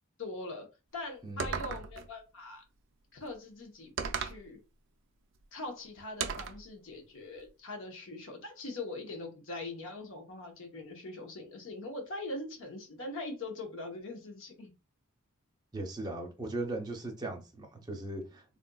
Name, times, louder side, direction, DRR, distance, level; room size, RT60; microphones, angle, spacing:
voice 1, 0.2-0.7 0.9-2.6 3.1-4.6 5.5-14.7, left 2 dB, 60° left, 0.8 m, -42 dB
voice 2, 1.2-1.7 15.7-18.4, right 2 dB, 20° right, 0.6 m, -38 dB
sound 1, 1.4-2.1 4.0-4.4 6.2-6.6, right 6 dB, 60° right, 0.4 m, -35 dB
3.6 x 2.5 x 2.2 m
head